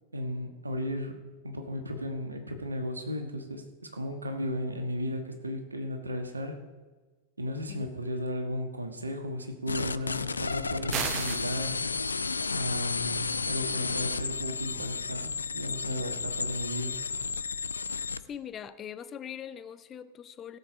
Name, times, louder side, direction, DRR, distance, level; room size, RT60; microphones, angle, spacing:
voice 1, 0.1-6.6 7.4-11.8 12.5-17.0, equal, 80° right, 5 dB, 1.4 m, -35 dB
sound 1, 9.7-18.2, left 4 dB, 75° left, 0.4 m, -32 dB
sound 2, 10.9-11.5, right 11 dB, 35° right, 0.5 m, -32 dB
voice 2, 18.3-20.6, left 9 dB, 25° left, 13 dB, 0.6 m, -41 dB
17.0 x 7.1 x 4.9 m, 1.3 s
figure-of-eight pair, 90°, 0 cm